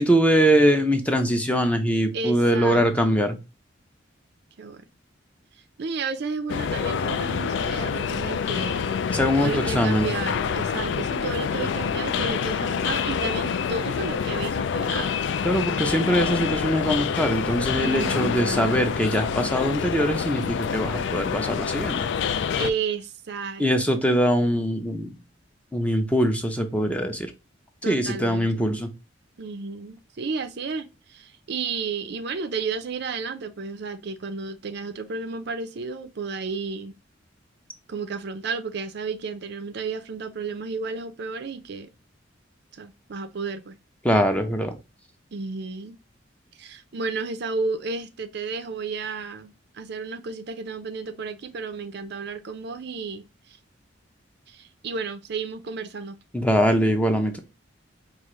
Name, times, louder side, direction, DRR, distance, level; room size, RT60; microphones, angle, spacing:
voice 1, 0.0-3.4 9.1-10.1 15.4-22.1 23.6-25.2 25.7-27.3 27.8-28.9 44.0-44.8 56.3-57.4, equal, 5° left, 0.5 m, -22 dB
voice 2, 2.1-3.2 4.6-4.9 5.8-8.9 9.3-15.2 17.8-19.0 22.6-23.6 27.8-28.6 29.4-36.9 37.9-41.9 42.7-43.8 45.3-46.0 46.6-53.6 54.5-56.2, right 4 dB, 60° right, 0.5 m, -32 dB
sound 1, 6.5-22.7, left 7 dB, 65° left, 0.3 m, -27 dB
4.7 x 2.5 x 3.0 m
head